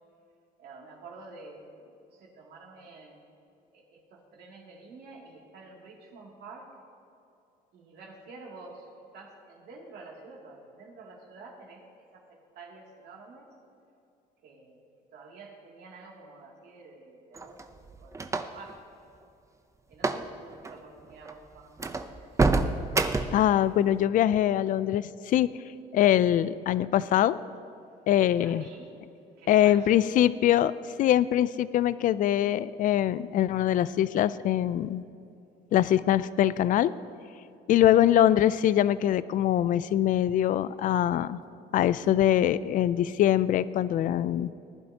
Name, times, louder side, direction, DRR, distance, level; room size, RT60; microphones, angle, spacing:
voice 1, 0.6-1.9 2.2-3.2 3.7-6.7 7.7-8.9 9.1-11.8 12.1-12.3 12.5-13.5 14.4-14.8 15.1-17.6 18.0-18.9 19.9-22.3 28.4-29.0 29.4-30.0 37.9-38.0, right 3 dB, 70° right, -2 dB, 2.6 m, -49 dB
sound 1, 17.4-18.7 19.9-20.3 20.5-20.7 21.3-21.4 21.8-23.5, right 3 dB, 15° right, 0.6 m, -27 dB
voice 2, 23.3-25.5 25.9-27.4 28.1-28.7 29.5-30.7 31.0-35.0 35.7-36.9 37.7-41.4 41.7-44.5, left 11 dB, 50° left, 17 dB, 0.4 m, -23 dB
19.5 x 11.0 x 2.9 m, 2.7 s
cardioid pair, 110°, 17 cm